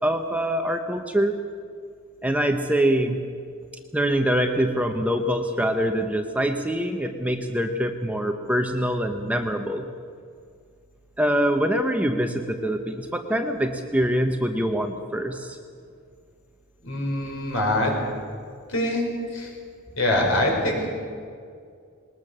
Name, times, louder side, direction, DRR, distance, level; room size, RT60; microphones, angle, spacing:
voice 1, 0.0-1.3 2.2-3.2 3.9-9.8 11.2-15.6, equal, 5° right, 5 dB, 0.9 m, -24 dB
voice 2, 16.8-17.9 18.7-19.5 19.9-20.9, left 1 dB, 65° left, 0 dB, 5.0 m, -24 dB
20.5 x 19.5 x 6.7 m, 2.3 s
head